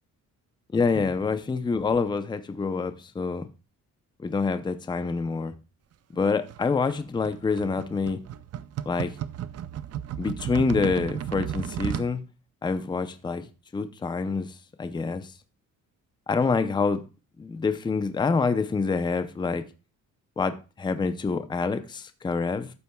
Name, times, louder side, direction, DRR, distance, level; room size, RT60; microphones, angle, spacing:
voice 1, 0.7-3.4 4.2-5.5 6.1-8.2 8.9-9.1 10.2-12.2 12.6-13.4 13.7-14.5 14.8-15.3 16.3-17.0 17.4-19.6 20.4-22.7, left 4 dB, 15° left, 0.5 m, -26 dB
sound 1, 6.5-12.1, right 10 dB, 55° right, 0.6 m, -34 dB
12.5 x 8.5 x 2.2 m
wide cardioid pair, 180°, 31 cm